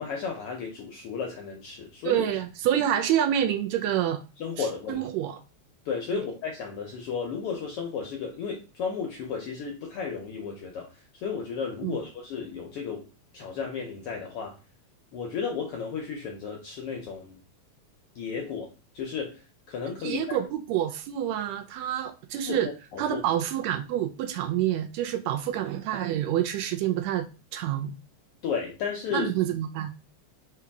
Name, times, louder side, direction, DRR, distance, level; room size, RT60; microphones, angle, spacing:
voice 1, 0.0-2.2 4.4-5.0 5.8-10.9 11.1-13.1 13.3-14.6 15.1-17.4 18.1-18.7 18.9-19.4 19.7-20.4 22.4-22.6 22.9-23.2 28.4-29.3, left 6 dB, 80° left, 1 dB, 1.3 m, -33 dB
voice 2, 2.0-4.2 4.6-5.4 6.1-6.2 11.8-12.0 20.0-22.7 23.0-27.2 27.5-28.0 29.1-29.9, right 11 dB, 80° right, 6 dB, 1.7 m, -27 dB
4.8 x 2.9 x 3.4 m, 0.32 s
omnidirectional pair, 3.3 m